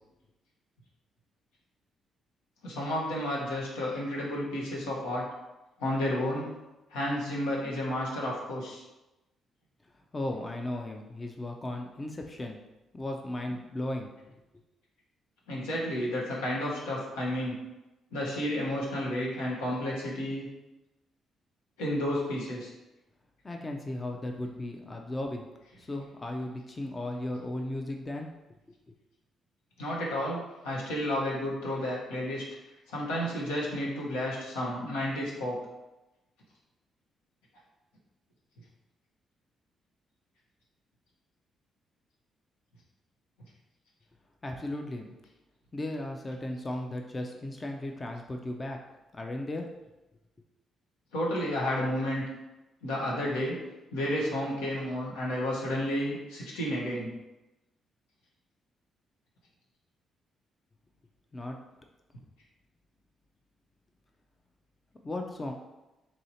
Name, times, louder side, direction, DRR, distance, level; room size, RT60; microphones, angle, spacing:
voice 1, 2.6-5.2 5.8-6.5 6.9-8.8 15.5-17.6 18.1-20.5 21.8-22.7 29.8-32.4 32.9-35.6 51.1-52.2 52.8-53.6 53.9-57.1, left 1 dB, 85° left, -4 dB, 0.9 m, -31 dB
voice 2, 10.1-12.6 12.9-14.3 23.4-25.5 25.8-28.3 28.7-28.8 44.4-45.1 45.7-48.8 49.1-49.7 61.3-61.6 65.0-65.5, left 1 dB, 30° left, 3 dB, 0.5 m, -36 dB
3.1 x 2.7 x 4.1 m, 1.0 s
hypercardioid pair, 50°, 0 cm